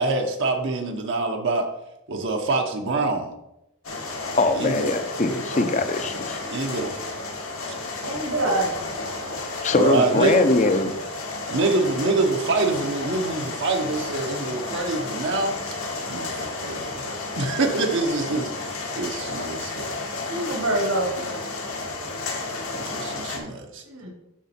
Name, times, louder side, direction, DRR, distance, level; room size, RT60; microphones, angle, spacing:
voice 1, 0.0-1.7 2.1-3.3 4.5-4.9 6.4-7.1 8.4-8.5 9.7-10.4 10.8-10.9 11.5-15.6 16.1-20.0 22.7-23.8, right 3 dB, 60° right, 2 dB, 0.9 m, -25 dB
sound 1, 3.8-23.4, left 3 dB, 80° left, 1.8 m, -32 dB
voice 2, 4.4-6.4 9.6-10.9, left 3 dB, 35° left, 9 dB, 0.6 m, -22 dB
voice 3, 8.0-8.7 20.3-21.4 23.8-24.1, right 1 dB, 75° right, 1 dB, 2.1 m, -26 dB
7.3 x 6.1 x 4.3 m, 0.86 s
head